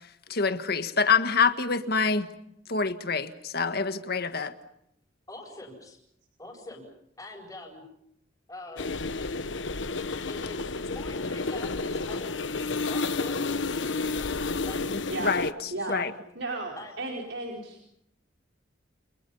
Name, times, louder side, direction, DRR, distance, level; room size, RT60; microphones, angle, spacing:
voice 1, 0.3-2.3 2.7-4.5 14.9-16.1, left 5 dB, 55° left, 9 dB, 1.8 m, -26 dB
voice 2, 5.3-6.0 6.4-6.8 7.2-7.8 8.5-8.9 10.2-12.5 12.9-14.3 14.6-14.9 15.7-16.1 16.8-17.2, left 2 dB, 20° left, -5 dB, 7.8 m, -44 dB
sound 1, 8.8-15.5, left 3 dB, 85° left, 1.2 m, -31 dB
voice 3, 16.4-17.8, right 2 dB, 85° right, 0 dB, 4.9 m, -34 dB
30.0 x 29.5 x 5.7 m, 0.76 s
head